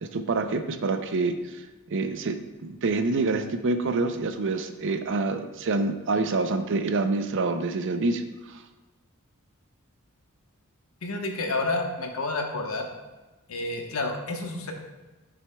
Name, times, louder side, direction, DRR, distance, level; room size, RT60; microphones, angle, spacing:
voice 1, 0.0-1.6 1.9-8.2 8.5-8.6, right 3 dB, 60° right, 8 dB, 0.6 m, -27 dB
voice 2, 11.0-12.9 13.5-14.7, left 2 dB, 70° left, 2 dB, 1.1 m, -29 dB
11.0 x 6.2 x 2.3 m, 1.1 s
head